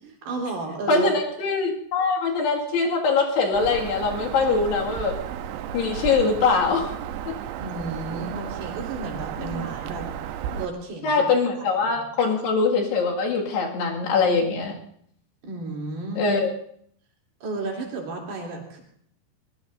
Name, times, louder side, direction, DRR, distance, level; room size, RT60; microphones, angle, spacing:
voice 1, 0.0-1.1 7.6-10.1 10.5-11.2 11.6-11.7 12.0-12.1 15.4-16.3 17.4-18.8, right 3 dB, 65° right, -2 dB, 5.1 m, -32 dB
voice 2, 0.9-5.2 5.7-7.0 7.3-7.4 9.4-9.6 11.0-14.7 16.2-16.5, left 4 dB, 75° left, -1 dB, 4.1 m, -23 dB
Bird vocalization bird call bird song, 3.5-10.7, right 9 dB, 85° right, 3.0 m, -33 dB
23.5 x 20.5 x 2.7 m, 0.65 s
omnidirectional pair, 5.0 m